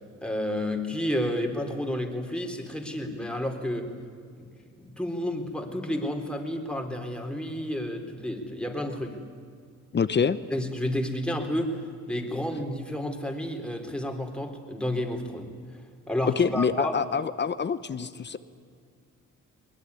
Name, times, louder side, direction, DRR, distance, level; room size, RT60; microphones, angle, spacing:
voice 1, 0.2-3.9 4.4-4.5 4.8-9.2 10.5-11.8 12.1-15.5 16.1-17.0, left 1 dB, 5° left, 3 dB, 3.8 m, -31 dB
voice 2, 9.9-10.4 16.3-18.4, left 6 dB, 35° left, 13 dB, 1.0 m, -26 dB
22.0 x 20.5 x 9.8 m, 2.1 s
cardioid pair, 90°, 30 cm